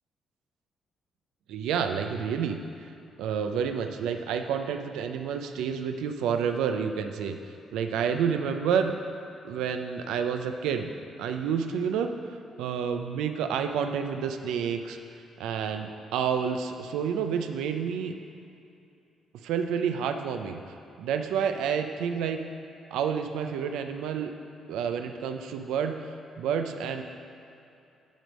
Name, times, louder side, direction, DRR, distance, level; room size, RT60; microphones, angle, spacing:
voice 1, 1.5-2.6 3.2-7.4 7.7-8.9 9.4-10.9 11.2-12.1 12.6-15.0 15.4-18.1 19.4-22.4 22.9-24.3 24.7-26.0 26.4-27.0, right 7 dB, 90° right, 6 dB, 0.4 m, -29 dB
10.0 x 3.5 x 6.3 m, 2.8 s
cardioid pair, 90°, 0 cm